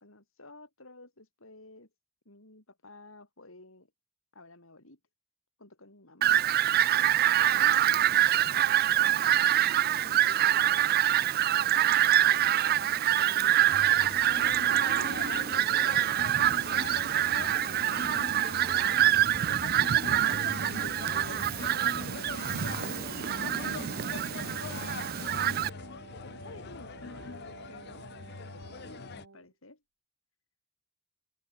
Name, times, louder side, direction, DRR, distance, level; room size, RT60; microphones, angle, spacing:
voice 1, 0.0-1.9 2.2-3.9 4.3-5.0 5.6-6.4 7.2-8.7 9.0-9.3 10.0-14.2 14.7-15.5 15.8-16.2 16.7-19.9 20.4-21.2 21.9-27.3 27.7-28.1 28.5-29.8, left 2 dB, 75° left, 6.7 m, -53 dB
Fowl, 6.2-25.7, right 12 dB, 45° right, 0.4 m, -25 dB
sound 1, 13.6-29.2, left 5 dB, 50° left, 0.5 m, -42 dB
Wind instrument woodwind instrument, 21.5-29.5, right 4 dB, 85° right, 1.4 m, -50 dB
open air
head